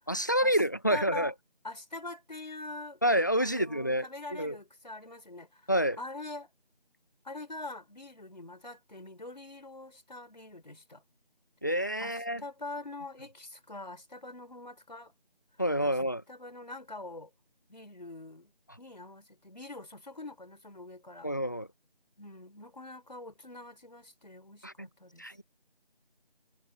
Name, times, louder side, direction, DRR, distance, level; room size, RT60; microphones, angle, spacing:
voice 1, 0.1-1.3 3.0-4.5 5.7-6.0 11.6-12.4 15.6-16.2 21.2-21.7 24.6-24.9 25.2-25.4, equal, 20° left, 1.4 m, -28 dB
voice 2, 0.9-1.3 1.6-3.0 3.4-5.7 6.0-6.5 7.2-11.0 12.0-15.1 15.8-15.9 16.3-17.3 17.7-18.5 18.8-21.3 22.2-25.3, left 2 dB, 45° left, 4.5 m, -44 dB
figure-of-eight pair, 175°, 30 cm